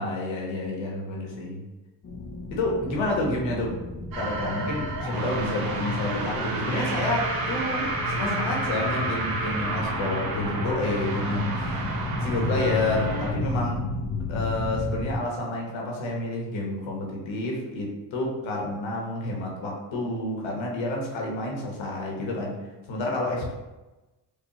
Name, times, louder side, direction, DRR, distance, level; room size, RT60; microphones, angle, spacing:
voice 1, 0.0-1.6 2.5-3.8 4.2-13.8 14.3-22.6 22.9-23.5, left 2 dB, 85° left, -1 dB, 1.0 m, -29 dB
sound 1, 2.0-15.2, left 2 dB, 35° left, 0.6 m, -32 dB
sound 2, 4.1-13.3, right 2 dB, 50° right, 0.8 m, -31 dB
4.5 x 2.4 x 2.9 m, 1.1 s
cardioid pair, 70°, 45 cm